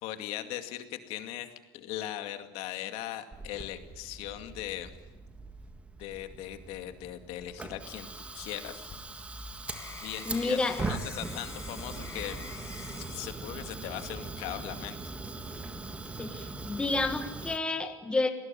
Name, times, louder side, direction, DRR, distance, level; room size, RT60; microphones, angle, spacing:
voice 1, 0.0-4.9 6.0-8.1 8.3-8.9 10.0-12.4 13.1-15.1, left 13 dB, 65° left, 8 dB, 2.3 m, -39 dB
Fire, 3.3-17.6, right 3 dB, 10° right, 1.6 m, -41 dB
sound 1, 8.6-14.7 15.3-15.7, left 6 dB, 25° left, 4.8 m, -48 dB
voice 2, 10.2-10.8 16.2-18.3, left 3 dB, 10° left, 7 dB, 1.5 m, -30 dB
29.0 x 19.0 x 9.2 m, 1.2 s
cardioid pair, 170°, 11 cm